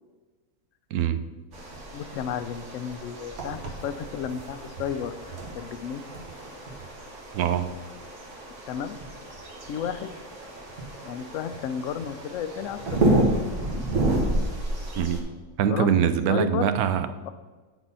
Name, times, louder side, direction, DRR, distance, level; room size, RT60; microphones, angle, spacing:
sound 1, 1.5-15.2, right 1 dB, 55° right, 1.6 m, -30 dB
voice 1, 1.9-5.1 5.5-6.0 8.7-9.0 9.7-10.1 11.0-13.2 15.7-15.9 16.3-16.7, left 8 dB, 70° left, 11 dB, 0.9 m, -32 dB
voice 2, 7.3-7.7 15.0-15.2 15.6-17.1, right 8 dB, 85° right, 11 dB, 1.1 m, -23 dB
9.1 x 4.1 x 5.5 m, 1.3 s
omnidirectional pair, 1.5 m